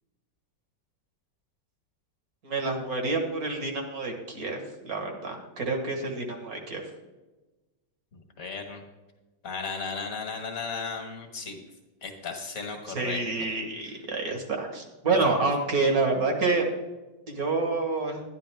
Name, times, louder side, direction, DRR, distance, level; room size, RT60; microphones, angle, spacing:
voice 1, 2.4-6.8 12.9-16.6 17.3-18.2, right 3 dB, 55° right, 3 dB, 1.9 m, -28 dB
voice 2, 8.1-8.8 9.4-11.6 12.0-13.5 13.8-13.9, left 4 dB, 50° left, 3 dB, 1.8 m, -35 dB
11.5 x 10.5 x 3.5 m, 1.1 s
omnidirectional pair, 1.9 m